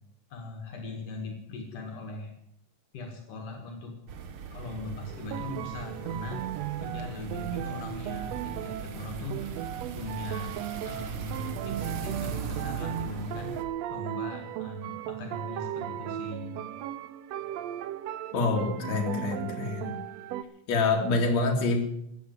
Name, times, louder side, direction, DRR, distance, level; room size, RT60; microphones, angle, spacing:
voice 1, 0.3-2.3 2.9-4.0 4.5-6.5 6.8-9.6 9.9-13.6 13.9-16.6, left 2 dB, 70° left, 3 dB, 3.3 m, -39 dB
sound 1, 4.1-13.6, right 7 dB, 55° right, 1.5 m, -39 dB
sound 2, 5.1-20.4, right 11 dB, 80° right, 1.5 m, -37 dB
voice 2, 18.3-20.0 20.7-21.8, left 3 dB, 55° left, 1 dB, 3.4 m, -26 dB
15.0 x 9.2 x 9.4 m, 0.78 s
omnidirectional pair, 3.8 m